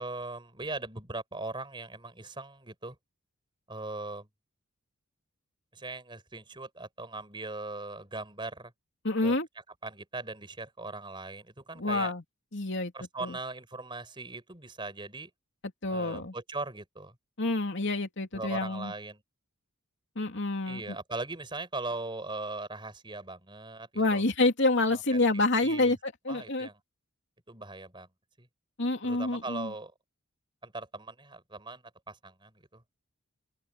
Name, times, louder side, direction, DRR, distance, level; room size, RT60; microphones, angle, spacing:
voice 1, 0.0-2.9 3.7-4.3 5.7-8.7 9.2-9.3 9.8-12.1 12.9-15.3 15.9-17.1 18.3-19.2 20.7-24.2 24.9-25.9 26.3-26.7 27.5-28.1 28.4-28.5 29.0-29.9 30.6-32.8, right 2 dB, 20° right, 5.0 m, -39 dB
voice 2, 9.0-9.5 11.8-12.2 12.5-12.9 13.2-13.4 15.8-16.3 17.4-18.9 20.1-21.0 23.9-26.7 28.8-29.7, left 2 dB, 55° left, 3.0 m, -28 dB
open air
head